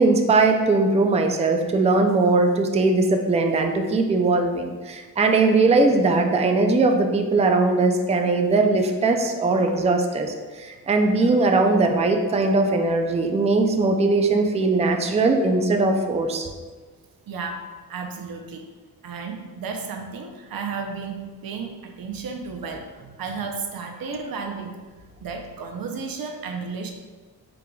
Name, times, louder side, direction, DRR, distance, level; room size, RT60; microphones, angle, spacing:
voice 1, 0.0-16.5, right 3 dB, 20° right, 4 dB, 0.3 m, -20 dB
voice 2, 17.3-18.7 19.0-24.8 25.2-26.9, right 5 dB, 65° right, 3 dB, 0.6 m, -33 dB
4.6 x 3.7 x 2.3 m, 1.4 s
cardioid pair, 80°, 39 cm